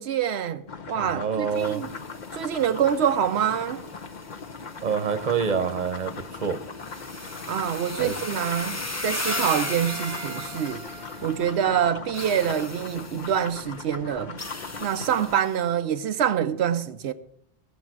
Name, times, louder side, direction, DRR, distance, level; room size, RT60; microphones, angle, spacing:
voice 1, 0.0-1.9 2.3-3.8 7.2-10.8 11.2-14.4 14.8-17.1, right 9 dB, 85° right, 0.9 m, -26 dB
sound 1, 0.7-15.4, left 5 dB, 45° left, 0.9 m, -39 dB
voice 2, 1.0-1.8 4.8-6.6 8.0-8.2, right 6 dB, 45° right, 1.0 m, -27 dB
sound 2, 1.5-11.5 12.1-13.6 14.4-15.6, left 2 dB, 15° left, 0.7 m, -37 dB
Trumpet, 9.3-11.9, right 6 dB, 70° right, 1.1 m, -42 dB
17.0 x 7.1 x 6.1 m
omnidirectional pair, 1.1 m